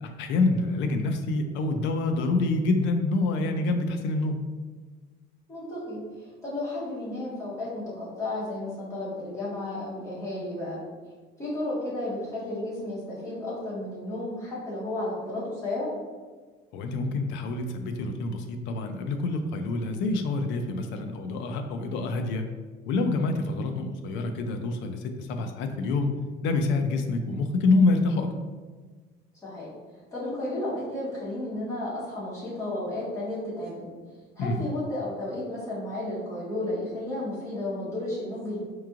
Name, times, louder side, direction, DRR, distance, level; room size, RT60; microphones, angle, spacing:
voice 1, 0.0-4.4 16.7-22.4 22.9-26.1 26.4-28.3 34.4-34.7, left 3 dB, 70° left, 6 dB, 0.5 m, -27 dB
voice 2, 5.5-10.8 11.4-15.9 23.8-23.9 29.4-29.7 30.1-33.9 34.4-38.6, left 1 dB, 15° left, -8 dB, 1.5 m, -33 dB
4.5 x 3.0 x 2.4 m, 1.4 s
cardioid pair, 150°, 20 cm